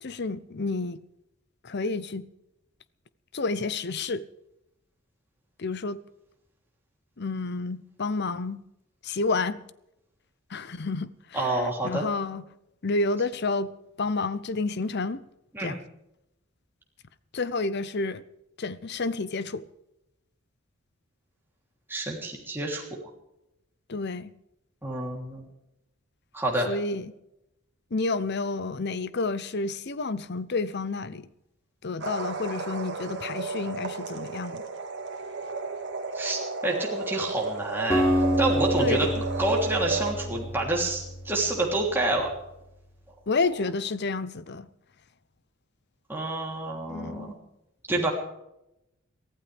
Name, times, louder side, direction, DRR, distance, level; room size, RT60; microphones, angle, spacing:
voice 1, 0.0-1.0 1.6-2.3 3.3-4.2 5.6-6.0 7.2-8.6 9.0-9.6 10.5-12.4 12.8-15.2 15.6-15.8 17.3-18.2 18.6-19.6 23.9-24.3 26.7-27.1 27.9-31.3 31.8-34.6 38.8-39.1 43.3-44.7 46.9-47.3, left 3 dB, 55° left, 0.7 m, -30 dB
voice 2, 11.3-12.0 15.5-15.7 21.9-22.8 24.8-25.5 26.3-26.7 36.1-39.1 39.4-42.3 46.1-47.3 47.9-48.1, right 2 dB, 10° right, 3.2 m, -28 dB
sound 1, 32.0-40.1, right 4 dB, 55° right, 2.1 m, -33 dB
Acoustic guitar, 37.9-42.0, equal, 15° left, 3.6 m, -28 dB
23.5 x 15.5 x 3.5 m
head